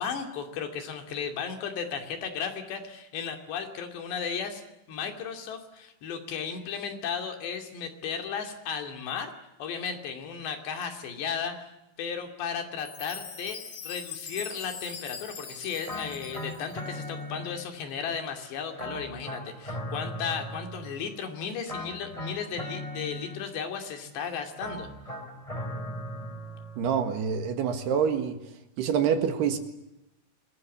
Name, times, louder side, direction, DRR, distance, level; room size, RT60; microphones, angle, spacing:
voice 1, 0.0-4.6 4.9-9.3 9.6-11.7 12.0-24.9, left 6 dB, 70° left, 5 dB, 4.8 m, -35 dB
Chime, 12.8-17.0, left 6 dB, 45° left, 2.6 m, -42 dB
sound 1, 15.8-17.9 18.8-21.1 21.7-23.8 24.6-27.0, left 1 dB, 10° left, 3.0 m, -38 dB
voice 2, 26.8-28.4 28.8-29.6, right 7 dB, 65° right, 7 dB, 3.6 m, -26 dB
27.0 x 21.5 x 8.6 m, 0.90 s
omnidirectional pair, 5.3 m